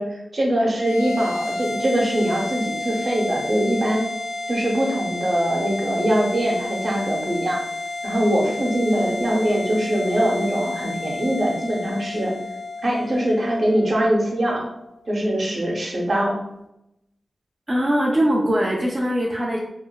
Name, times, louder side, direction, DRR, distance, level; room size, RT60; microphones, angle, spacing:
voice 1, 0.0-4.1 4.5-7.6 8.0-12.3 12.8-14.7 15.1-16.4, equal, 55° right, -2 dB, 0.7 m, -22 dB
sound 1, 0.8-15.4, left 2 dB, 55° left, 0.4 m, -31 dB
voice 2, 17.7-19.6, equal, 25° right, -3 dB, 0.3 m, -21 dB
3.0 x 2.0 x 2.2 m, 0.84 s
wide cardioid pair, 120°, 0 cm